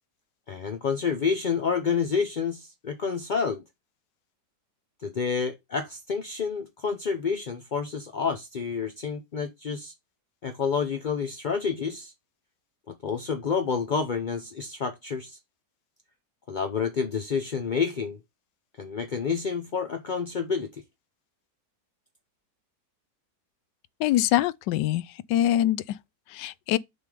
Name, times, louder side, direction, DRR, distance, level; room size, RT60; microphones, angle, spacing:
voice 1, 0.5-3.6 5.0-9.9 10.4-12.1 12.9-15.4 16.5-18.2 18.8-20.7, left 6 dB, 50° left, 0.5 m, -29 dB
voice 2, 24.0-25.8 26.3-26.8, left 13 dB, 85° left, 1.2 m, -24 dB
6.6 x 3.6 x 4.9 m
omnidirectional pair, 1.8 m